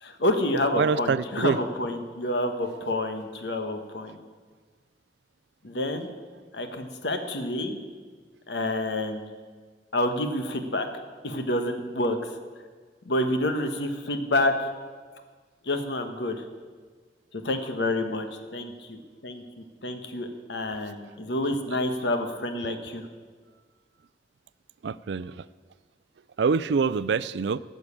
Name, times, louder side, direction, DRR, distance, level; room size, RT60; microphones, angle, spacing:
voice 1, 0.0-4.2 5.6-6.1 6.5-7.8 8.5-9.2 9.9-10.9 11.2-12.3 13.0-14.7 15.6-16.4 17.3-18.3 18.5-23.1, left 1 dB, 75° left, 7 dB, 1.2 m, -28 dB
voice 2, 0.8-1.6 24.8-25.4 26.4-27.6, right 5 dB, 75° right, 17 dB, 0.4 m, -25 dB
14.0 x 6.5 x 8.5 m, 1.5 s
head